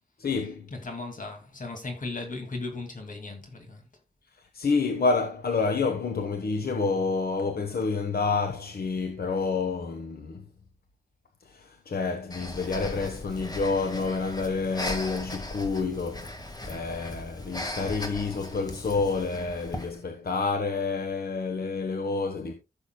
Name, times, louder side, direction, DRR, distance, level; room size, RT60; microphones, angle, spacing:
voice 1, 0.2-0.7 4.5-10.4 11.5-16.3 16.6-22.5, left 4 dB, 75° left, 1.1 m, -28 dB
voice 2, 0.7-3.8, left 3 dB, 55° left, 2.3 m, -37 dB
Breathing, 12.3-20.0, left 1 dB, 25° left, 1.7 m, -38 dB
15.0 x 6.9 x 2.2 m
wide cardioid pair, 100°, 16 cm